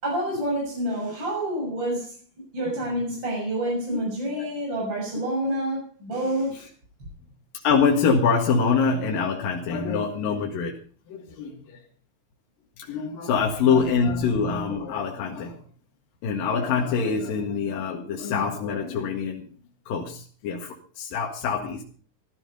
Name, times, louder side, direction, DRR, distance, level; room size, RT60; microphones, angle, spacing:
voice 1, 0.0-2.1 2.5-6.7, right 1 dB, 30° right, 7.3 m, -28 dB
voice 2, 2.6-2.9 3.6-4.0 4.4-4.5 7.5-10.8 11.1-11.8 12.8-15.6 16.2-19.4 19.9-21.8, left 5 dB, 70° left, 3.5 m, -25 dB
16.0 x 12.5 x 5.4 m
omnidirectional pair, 4.2 m